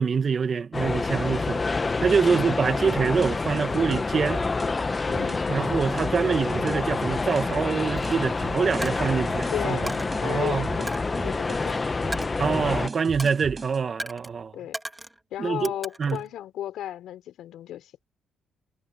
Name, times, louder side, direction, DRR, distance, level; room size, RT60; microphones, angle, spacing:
voice 1, 0.0-1.6 2.0-4.4 5.5-9.9 10.2-10.7 12.4-14.5 15.4-15.7 16.0-16.2, right 6 dB, 45° right, 1.6 m, -25 dB
sound 1, 0.7-12.9, left 3 dB, 25° left, 0.9 m, -27 dB
voice 2, 2.2-2.6 5.1-5.6 9.5-12.1 14.5-14.8 15.3-17.9, left 12 dB, 80° left, 5.7 m, -35 dB
sound 2, 2.9-13.8, right 4 dB, 30° right, 4.6 m, -39 dB
Coin (dropping), 8.0-8.2 8.8-9.4 9.9-10.1 10.9-11.7 12.1-12.8 13.2-13.5 14.0-14.3 14.7-15.2 15.6-16.3, right 1 dB, 10° right, 2.1 m, -38 dB
cardioid pair, 90°, 0 cm